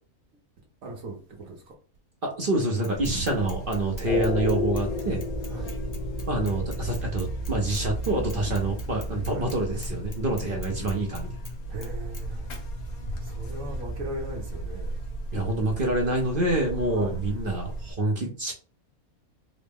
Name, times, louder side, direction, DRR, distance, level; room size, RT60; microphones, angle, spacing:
voice 1, 0.8-1.6 5.5-5.7 9.3-9.4 11.7-12.5 13.3-14.9 17.0-17.1, right 2 dB, 75° right, 1.2 m, -37 dB
voice 2, 2.2-5.2 6.3-11.3 15.3-18.5, right 2 dB, 50° right, 0.7 m, -27 dB
Bicycle / Mechanisms, 2.8-9.6 9.8-11.5 11.8-12.2 12.5-12.6, left 2 dB, 25° left, 0.4 m, -46 dB
Buzz, 2.9-17.9, right 2 dB, 75° left, 1.3 m, -35 dB
sound 1, 4.1-14.3, left 3 dB, 55° left, 0.7 m, -35 dB
3.9 x 2.0 x 3.5 m
omnidirectional pair, 1.5 m